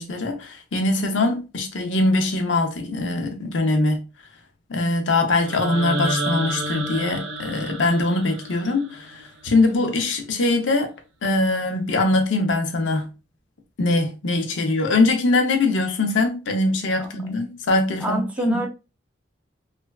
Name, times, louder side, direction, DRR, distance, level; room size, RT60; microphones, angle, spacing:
voice 1, 0.0-4.0 4.7-10.9 11.2-13.1 13.8-18.6, left 2 dB, 90° left, 0.7 m, -22 dB
sound 1, 5.4-9.5, right 1 dB, 70° right, 0.5 m, -30 dB
voice 2, 18.0-18.7, right 1 dB, 5° right, 0.4 m, -27 dB
3.2 x 2.3 x 2.3 m
head